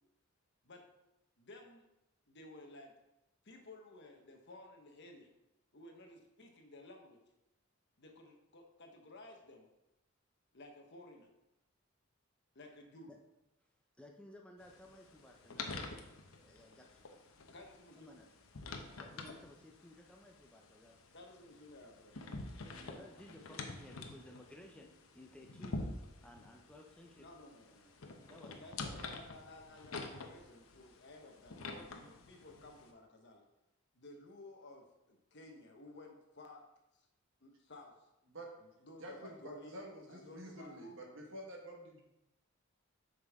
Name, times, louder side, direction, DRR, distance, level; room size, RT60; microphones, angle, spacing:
voice 1, 1.4-1.8 2.3-2.9 3.4-5.3 5.7-7.2 8.0-9.7 10.5-11.3 12.5-13.1 17.5-18.2 21.1-22.2 27.2-28.0 28.6-33.4 33.9-36.6 37.0-37.1 37.4-38.1 38.6-41.1, left 2 dB, 55° left, 2 dB, 1.2 m, -55 dB
voice 2, 14.0-16.1 16.4-17.1 18.0-18.3 18.9-21.0 22.8-25.8 26.2-27.4 28.3-29.2, left 1 dB, 5° left, 1 dB, 0.6 m, -57 dB
sound 1, 14.6-32.9, left 3 dB, 85° left, 0.8 m, -48 dB
voice 3, 39.0-42.0, right 1 dB, 65° right, 0 dB, 1.6 m, -49 dB
7.7 x 5.4 x 3.6 m, 0.91 s
head